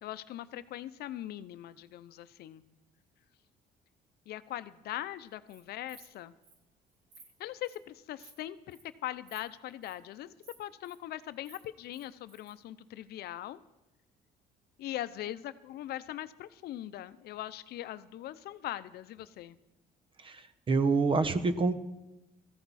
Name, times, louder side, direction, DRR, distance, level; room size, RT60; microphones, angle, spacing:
voice 1, 0.0-2.6 4.3-6.3 7.4-13.6 14.8-19.6, left 13 dB, 70° left, 13 dB, 0.7 m, -41 dB
Insect, 5.3-5.6 5.9-6.1 6.4-6.5 6.9-7.2 7.6-7.8 8.2-8.4 8.7-8.9 9.3-9.4 9.7-9.9 10.4-10.9 11.3-12.5, right 4 dB, 85° right, 4.5 m, -55 dB
voice 2, 20.2-21.8, right 4 dB, 30° right, 12 dB, 1.0 m, -27 dB
18.5 x 14.5 x 4.2 m, 0.99 s
cardioid pair, 110°, 17 cm